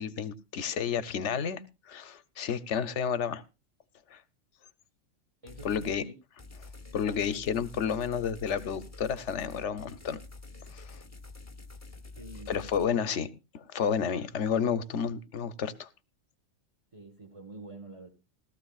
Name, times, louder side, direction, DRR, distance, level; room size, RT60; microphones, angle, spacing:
voice 1, 0.0-3.4 4.1-4.2 5.6-6.0 6.9-10.2 10.7-11.0 12.5-13.3 13.5-15.9, left 7 dB, 60° left, 1.0 m, -31 dB
voice 2, 5.4-6.1 7.0-7.4 12.2-13.2 14.1-14.2 16.9-18.1, right 2 dB, 25° right, 1.3 m, -47 dB
sound 1, 5.5-6.0 6.4-12.9, left 3 dB, 15° left, 0.8 m, -47 dB
17.5 x 13.5 x 2.4 m
omnidirectional pair, 1.4 m